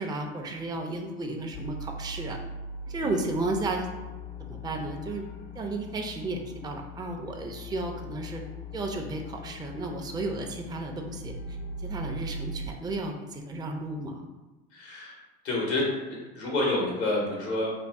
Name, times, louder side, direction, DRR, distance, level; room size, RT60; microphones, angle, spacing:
voice 1, 0.0-2.4 2.9-3.9 4.4-5.2 5.6-8.4 8.7-11.3 11.8-14.3, right 2 dB, 15° right, 2 dB, 0.4 m, -33 dB
sound 1, 1.5-12.7, left 1 dB, 70° left, 0.6 m, -40 dB
voice 2, 14.7-17.7, left 2 dB, 90° left, -2 dB, 1.1 m, -29 dB
2.6 x 2.6 x 3.4 m, 1.1 s
hypercardioid pair, 75°, 33 cm